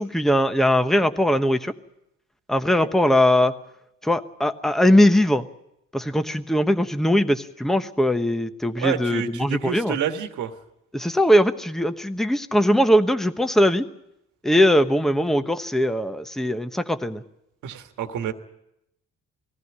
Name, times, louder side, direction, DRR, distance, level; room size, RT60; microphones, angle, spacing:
voice 1, 0.0-1.7 2.5-3.5 4.0-5.5 5.9-9.9 10.9-13.8 14.4-17.2, equal, ahead, 9 dB, 1.0 m, -20 dB
voice 2, 8.8-10.5 17.6-18.3, right 9 dB, 75° right, 6 dB, 1.6 m, -29 dB
20.5 x 14.5 x 9.7 m, 0.83 s
cardioid pair, 90°, 30 cm